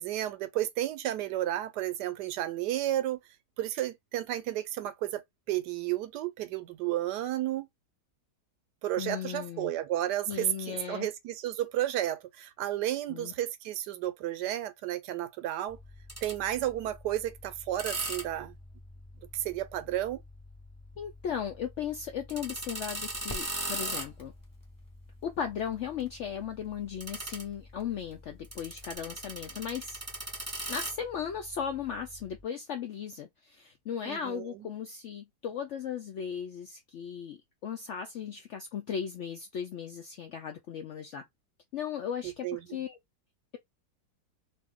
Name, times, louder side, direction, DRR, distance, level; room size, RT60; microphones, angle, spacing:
voice 1, 0.0-3.2 3.6-7.7 8.8-15.8 16.2-18.6 19.3-20.2 34.0-34.7 42.2-42.6, right 13 dB, 85° right, 1.2 m, -32 dB
voice 2, 9.0-9.7 10.3-11.1 13.1-13.3 21.0-24.3 25.2-30.0 30.7-41.2 41.7-43.0, left 8 dB, 80° left, 0.6 m, -37 dB
sound 1, 15.7-32.4, right 1 dB, 20° right, 0.4 m, -42 dB
sound 2, 21.0-29.0, equal, 15° left, 0.7 m, -53 dB
2.7 x 2.6 x 3.5 m
omnidirectional pair, 1.8 m